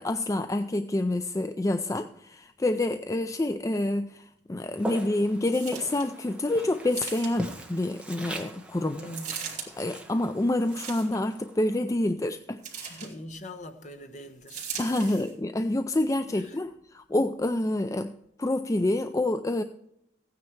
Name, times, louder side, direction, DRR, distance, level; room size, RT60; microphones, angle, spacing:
voice 1, 0.0-9.0 9.8-13.0 14.8-18.1 18.4-19.6, left 1 dB, 15° left, 0.4 m, -27 dB
Walk footsteps, 4.8-11.9, right 1 dB, 5° right, 1.2 m, -42 dB
sound 1, 5.5-6.1 6.9-7.6 9.1-9.7 10.6-11.3 12.6-13.1 14.5-15.3 16.0-16.1, right 7 dB, 40° right, 2.9 m, -39 dB
voice 2, 9.0-9.6 12.9-15.2 16.3-16.6, left 1 dB, 40° left, 1.1 m, -43 dB
15.5 x 9.4 x 4.6 m
head